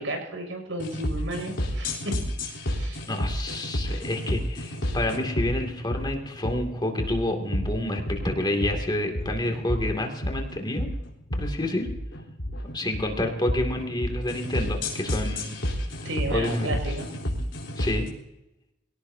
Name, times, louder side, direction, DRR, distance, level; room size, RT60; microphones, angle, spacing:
voice 1, 0.0-2.2 2.5-3.0 16.0-17.1, right 1 dB, 85° right, 3 dB, 6.3 m, -33 dB
sound 1, 0.8-18.1, equal, 75° left, 3.7 m, -31 dB
voice 2, 3.1-10.9 11.3-11.9 12.7-15.5 16.3-16.8 17.8-18.1, left 1 dB, 25° left, 3 dB, 2.5 m, -29 dB
24.0 x 17.5 x 2.8 m, 0.89 s
head